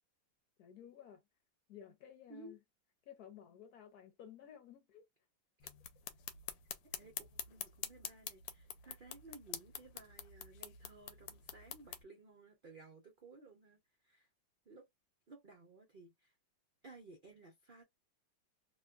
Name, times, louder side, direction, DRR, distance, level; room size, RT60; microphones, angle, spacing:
voice 1, 0.6-1.2 1.7-2.6 3.1-5.1, left 9 dB, 65° left, 1.1 m, -55 dB
sound 1, 5.6-12.0, left 9 dB, 85° left, 1.3 m, -47 dB
voice 2, 7.0-14.3 14.7-14.9 15.3-16.3 16.8-17.8, right 2 dB, 80° right, 0.4 m, -57 dB
2.9 x 2.2 x 2.3 m
omnidirectional pair, 2.0 m